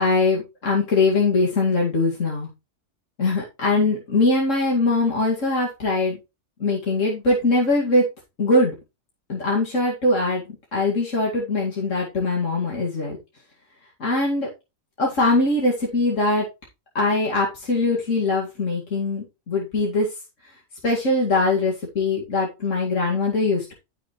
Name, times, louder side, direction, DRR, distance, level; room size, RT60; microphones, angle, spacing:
voice 1, 0.0-2.5 3.2-6.2 6.6-8.1 8.4-8.7 9.3-10.4 10.7-13.2 14.0-14.5 15.0-16.5 16.9-20.1 20.8-23.7, left 2 dB, 85° left, -3 dB, 2.6 m, -22 dB
14.0 x 6.3 x 3.1 m, 0.26 s
omnidirectional pair, 1.3 m